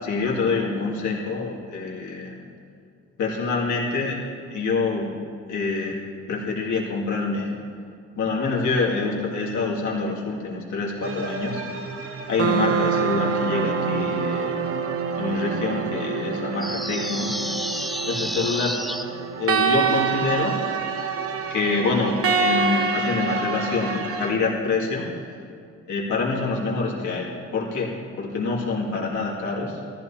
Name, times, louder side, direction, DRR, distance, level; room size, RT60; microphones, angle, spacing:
voice 1, 0.0-2.4 3.2-4.2 4.5-5.1 5.5-6.0 6.3-7.5 8.2-11.6 12.3-14.8 15.1-17.3 18.0-18.8 19.4-20.6 21.5-25.1 25.9-27.9 28.2-29.8, left 4 dB, 70° left, -4 dB, 2.5 m, -26 dB
sound 1, 11.0-24.3, right 5 dB, 50° right, 1.1 m, -26 dB
sound 2, 16.6-19.0, equal, ahead, 0.7 m, -30 dB
14.5 x 14.5 x 2.9 m, 2.4 s
cardioid pair, 90°, 30 cm